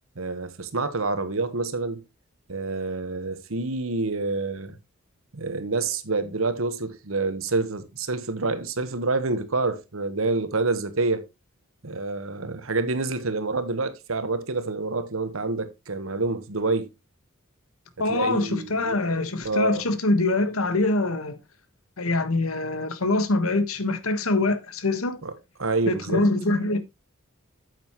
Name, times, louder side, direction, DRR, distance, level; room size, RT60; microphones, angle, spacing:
voice 1, 0.2-2.0 2.5-4.8 5.3-11.3 11.8-16.9 18.1-19.0 19.4-19.8 25.2-25.3 25.6-26.2, right 3 dB, 75° right, 1.2 m, -27 dB
voice 2, 18.0-21.4 22.0-25.2 25.9-26.8, left 2 dB, 90° left, 1.4 m, -24 dB
9.3 x 8.0 x 3.0 m
head